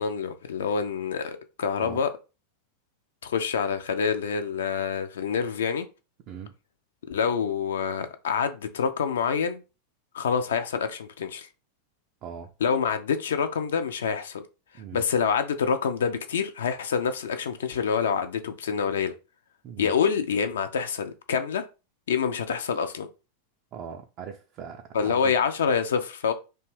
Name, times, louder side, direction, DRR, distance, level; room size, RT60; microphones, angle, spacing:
voice 1, 0.0-2.1 3.2-5.9 7.1-9.6 10.1-11.5 12.6-14.4 14.9-19.1 19.8-21.7 22.1-23.1 24.9-26.3, left 6 dB, 65° left, 0.3 m, -26 dB
voice 2, 12.2-12.5 14.8-15.0 19.6-19.9 23.7-25.3, right 7 dB, 35° right, 0.3 m, -40 dB
2.5 x 2.2 x 3.1 m
figure-of-eight pair, 90°, 0 cm